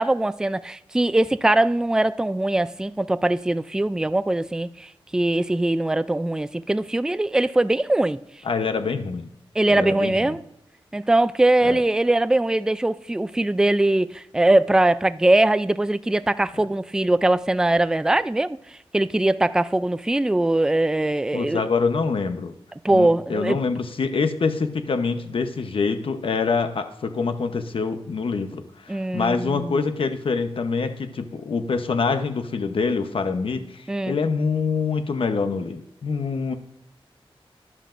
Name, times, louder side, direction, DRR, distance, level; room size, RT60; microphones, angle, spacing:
voice 1, 0.0-8.2 9.6-10.4 10.9-18.6 18.9-21.6 22.8-23.6 28.9-29.8 33.9-34.2, right 2 dB, 5° right, 0.3 m, -21 dB
voice 2, 8.4-9.3 9.7-10.3 11.6-11.8 21.3-22.5 22.9-36.5, left 4 dB, 65° left, 0.8 m, -25 dB
13.5 x 11.0 x 2.5 m
wide cardioid pair, 125°, 10 cm